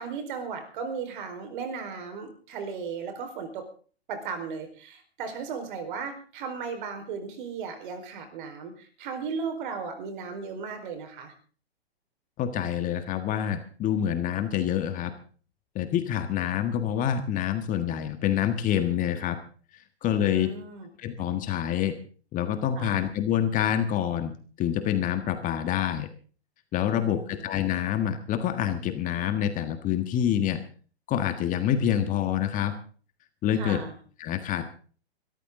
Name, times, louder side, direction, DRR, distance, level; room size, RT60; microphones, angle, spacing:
voice 1, 0.0-3.7 4.1-11.3 20.2-20.9 22.8-23.0 26.9-27.4 33.5-33.9, right 5 dB, 50° right, 8 dB, 4.6 m, -36 dB
voice 2, 12.4-15.1 15.7-19.4 20.0-20.5 21.0-22.0 22.3-24.3 24.6-26.1 26.7-30.6 31.1-32.7 33.4-33.8 34.2-34.7, left 10 dB, 25° left, 8 dB, 1.6 m, -27 dB
22.5 x 13.5 x 3.8 m, 0.41 s
hypercardioid pair, 125°, 32 cm